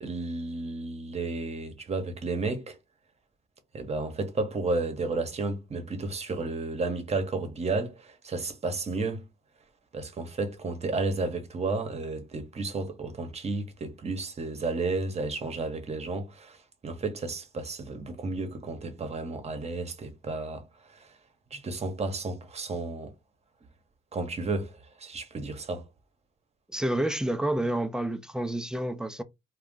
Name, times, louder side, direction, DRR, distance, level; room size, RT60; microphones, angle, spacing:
voice 1, 0.0-2.8 3.7-9.3 9.9-20.6 20.9-21.1 21.5-23.1 24.1-25.9, right 3 dB, 35° right, 0.8 m, -32 dB
voice 2, 26.7-29.2, right 1 dB, 5° right, 0.3 m, -29 dB
2.5 x 2.2 x 3.6 m
cardioid pair, 90°, 20 cm